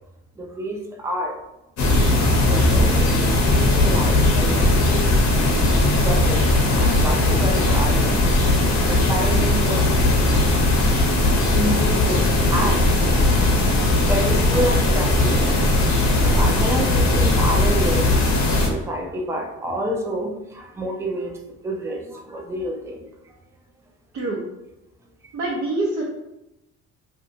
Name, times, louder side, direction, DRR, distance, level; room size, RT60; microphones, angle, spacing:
voice 1, 0.4-1.4 2.5-5.0 5.8-6.5 6.7-8.1 8.9-10.4 11.5-13.6 14.1-18.2 18.7-23.1, equal, 10° right, 1 dB, 0.5 m, -29 dB
sound 1, 1.8-18.7, left 2 dB, 60° left, 0.9 m, -18 dB
voice 2, 25.3-26.0, right 2 dB, 60° right, -5 dB, 0.7 m, -25 dB
2.7 x 2.4 x 2.6 m, 0.91 s
supercardioid pair, 75°, 32 cm